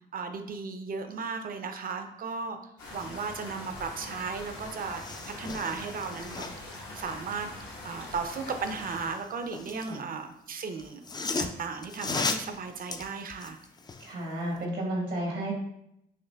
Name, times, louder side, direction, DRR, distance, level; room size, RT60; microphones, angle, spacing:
voice 1, 0.1-2.6 2.9-5.0 5.3-6.4 6.9-7.5 7.8-11.0 11.4-13.6, right 5 dB, 50° right, 6 dB, 0.6 m, -35 dB
sound 1, 2.8-9.2, left 2 dB, 75° left, 1.2 m, -43 dB
sound 2, 4.2-4.3 4.5-6.8 8.9-10.0 10.8-14.1 14.6-14.7, left 3 dB, 20° left, 0.4 m, -36 dB
voice 2, 14.0-15.5, right 1 dB, 85° right, -1 dB, 1.3 m, -32 dB
5.8 x 2.7 x 2.2 m, 0.78 s
supercardioid pair, 65°, 19 cm